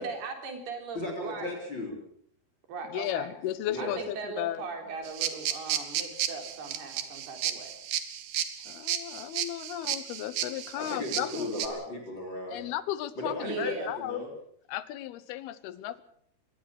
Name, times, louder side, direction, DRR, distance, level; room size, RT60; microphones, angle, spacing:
voice 1, 0.0-1.6 2.7-3.3 3.8-7.7 13.4-13.9, right 4 dB, 85° right, 4 dB, 5.6 m, -39 dB
voice 2, 0.9-1.9 3.7-4.0 10.8-12.6 13.2-14.3, left 1 dB, 30° left, 2 dB, 4.3 m, -36 dB
voice 3, 2.9-4.6 8.7-11.5 12.5-14.3 14.7-16.0, left 13 dB, 85° left, 16 dB, 3.0 m, -35 dB
sound 1, 5.1-11.7, right 10 dB, 70° right, 3.2 m, -33 dB
23.0 x 19.0 x 6.5 m, 0.64 s
omnidirectional pair, 4.4 m